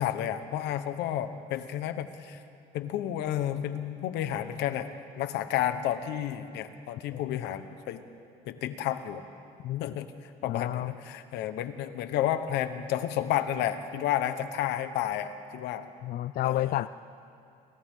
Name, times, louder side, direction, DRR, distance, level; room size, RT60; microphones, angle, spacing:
voice 1, 0.0-2.4 2.7-8.0 8.5-9.2 9.8-10.1 10.4-15.8 16.4-16.8, left 11 dB, 85° left, 10 dB, 1.2 m, -31 dB
voice 2, 7.1-7.4 9.6-9.9 10.4-10.9 16.0-16.9, left 14 dB, 60° left, 15 dB, 0.4 m, -30 dB
29.5 x 24.0 x 3.8 m, 2.5 s
cardioid pair, 110°, 17 cm